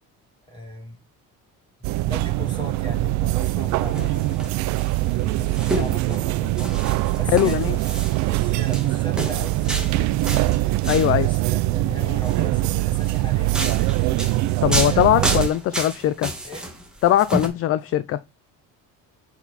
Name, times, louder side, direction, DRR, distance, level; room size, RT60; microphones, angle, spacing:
voice 1, 0.5-1.0 2.1-4.4 5.1-6.9 7.1-10.5 11.1-14.1 14.8-15.4 16.4-16.7, equal, 15° left, 3.8 m, -38 dB
sound 1, 1.8-15.5, right 18 dB, 60° right, 0.4 m, -23 dB
sound 2, 3.7-11.2 12.0-12.4 13.0-17.5, right 1 dB, ahead, 2.0 m, -31 dB
voice 2, 7.3-7.8 10.9-11.3 14.6-16.3 17.0-18.2, left 12 dB, 45° left, 0.5 m, -20 dB
8.0 x 4.4 x 4.0 m
cardioid pair, 160°, 33 cm